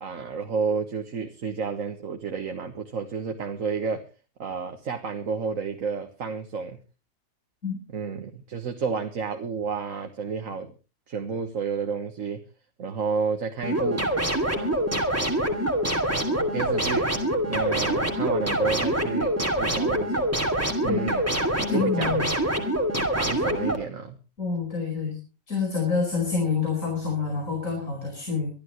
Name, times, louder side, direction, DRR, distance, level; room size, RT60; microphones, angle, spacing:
voice 1, 0.0-4.1 4.4-6.8 7.9-10.7 11.1-12.4 12.8-14.0 14.5-14.8 16.3-17.0 17.5-19.3 19.6-20.3 20.8-21.3 21.7-22.2 23.2-24.2, right 5 dB, 65° right, 4 dB, 1.7 m, -31 dB
sound 1, 13.6-23.8, right 1 dB, 10° right, 2.5 m, -25 dB
voice 2, 21.6-22.2 24.4-25.2 25.5-28.5, left 5 dB, 65° left, 1 dB, 5.5 m, -27 dB
24.5 x 12.5 x 3.1 m, 0.33 s
omnidirectional pair, 1.5 m